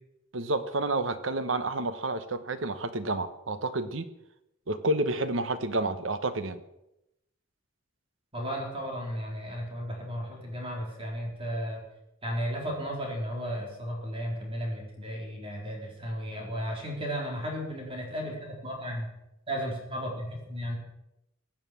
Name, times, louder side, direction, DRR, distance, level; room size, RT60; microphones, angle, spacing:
voice 1, 0.3-4.1 4.7-6.6, right 2 dB, 75° right, 11 dB, 1.1 m, -30 dB
voice 2, 8.3-11.8 12.2-19.1 19.5-20.8, equal, 30° right, -1 dB, 4.2 m, -34 dB
16.5 x 9.0 x 7.5 m, 0.87 s
head